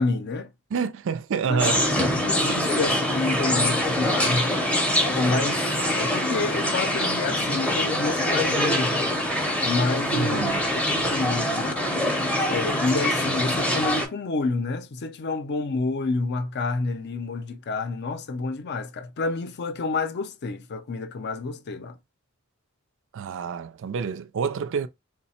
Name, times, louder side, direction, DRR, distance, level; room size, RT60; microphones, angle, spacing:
voice 1, 0.0-0.5 1.5-1.6 2.2-5.7 5.9-9.1 9.6-12.0 12.4-22.0, left 3 dB, 50° left, 0.5 m, -29 dB
voice 2, 0.7-2.0 10.1-10.6 23.1-24.9, right 6 dB, 60° right, 0.4 m, -28 dB
sound 1, 1.6-14.1, left 1 dB, 5° left, 0.6 m, -24 dB
3.1 x 2.1 x 4.2 m
head